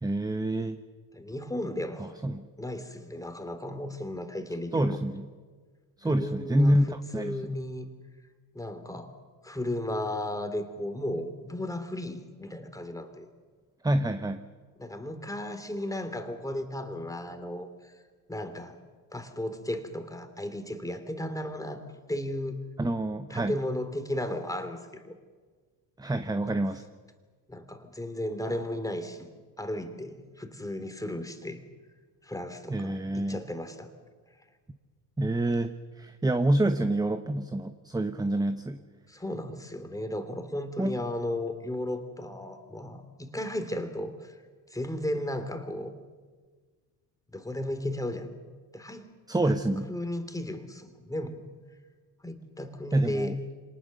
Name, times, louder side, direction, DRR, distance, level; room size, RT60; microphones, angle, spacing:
voice 1, 0.0-0.8 2.0-2.5 4.7-5.3 6.0-7.5 13.8-14.5 22.8-23.5 26.0-26.8 32.7-33.4 35.2-35.7 36.0-38.8 40.8-41.0 49.3-49.9 52.9-53.4, right 1 dB, 10° right, 9 dB, 1.0 m, -27 dB
voice 2, 1.1-2.1 2.6-5.0 6.0-7.9 8.5-9.1 9.4-13.3 14.8-17.9 18.3-18.8 19.1-21.8 22.1-22.6 23.3-25.1 27.5-29.3 29.6-31.6 32.2-33.9 39.1-44.4 44.7-45.9 47.3-48.4 48.7-49.1 49.4-49.5 49.9-51.4 52.2-53.3, left 1 dB, 10° left, 8 dB, 2.9 m, -35 dB
25.5 x 19.0 x 6.7 m, 1.5 s
supercardioid pair, 75°, 42 cm